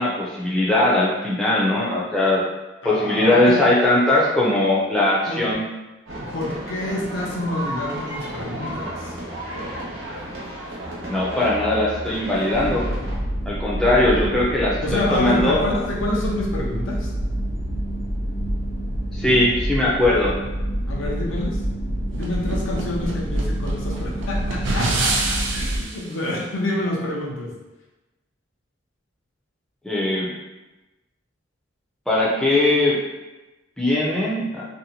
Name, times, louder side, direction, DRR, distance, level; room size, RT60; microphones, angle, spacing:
voice 1, 0.0-2.4 2.8-5.6 11.1-12.8 13.5-15.6 19.1-20.4 29.8-30.3 32.1-33.0 33.8-34.6, left 1 dB, 5° left, -7 dB, 0.4 m, -20 dB
voice 2, 2.8-3.6 5.3-5.5 6.2-9.2 14.8-17.1 20.9-21.6 22.2-27.5, left 1 dB, 85° left, -2 dB, 0.6 m, -27 dB
sound 1, 6.1-13.2, right 1 dB, 85° right, 0.9 m, -33 dB
sound 2, 12.5-25.8, right 1 dB, 45° left, 0.7 m, -27 dB
sound 3, 22.1-26.0, right 2 dB, 70° right, 0.4 m, -27 dB
2.6 x 2.1 x 2.8 m, 1.1 s
head